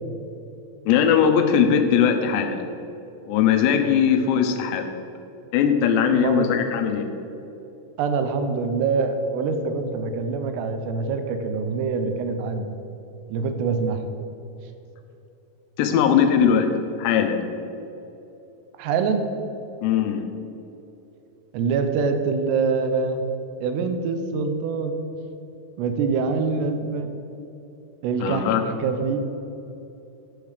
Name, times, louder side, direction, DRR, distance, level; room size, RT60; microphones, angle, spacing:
voice 1, 0.9-2.6 3.3-4.9 5.5-7.1 15.8-16.7 17.0-17.4 19.8-20.2 28.2-28.6, left 7 dB, 90° left, 7 dB, 2.9 m, -20 dB
voice 2, 6.1-6.5 8.0-12.7 13.3-14.0 18.8-19.3 21.5-23.2 23.6-25.0 25.8-27.1 28.0-29.3, right 5 dB, 85° right, 7 dB, 2.9 m, -25 dB
9.6 x 6.5 x 5.0 m, 2.9 s
omnidirectional pair, 4.9 m